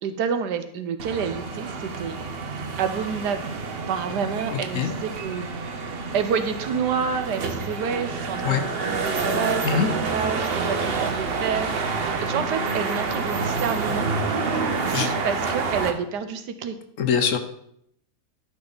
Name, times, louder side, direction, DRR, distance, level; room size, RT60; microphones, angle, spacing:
voice 1, 0.0-2.2 2.8-5.5 6.1-11.7 12.2-14.1 14.8-16.8, right 7 dB, 85° right, 10 dB, 1.4 m, -29 dB
sound 1, 1.0-15.9, right 4 dB, 45° right, 0.8 m, -28 dB
voice 2, 17.0-17.4, left 7 dB, 60° left, 7 dB, 1.0 m, -22 dB
12.0 x 5.3 x 4.0 m, 0.72 s
omnidirectional pair, 1.7 m